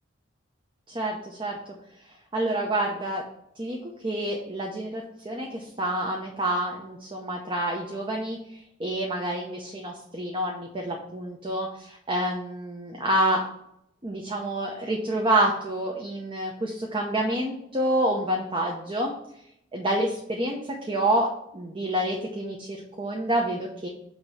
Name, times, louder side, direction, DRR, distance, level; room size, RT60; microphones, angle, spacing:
voice 1, 0.9-1.6 2.3-3.2 3.6-3.8 4.0-13.5 14.0-19.1 19.7-23.9, right 1 dB, 25° right, 0 dB, 0.8 m, -28 dB
8.9 x 3.0 x 5.7 m, 0.77 s
head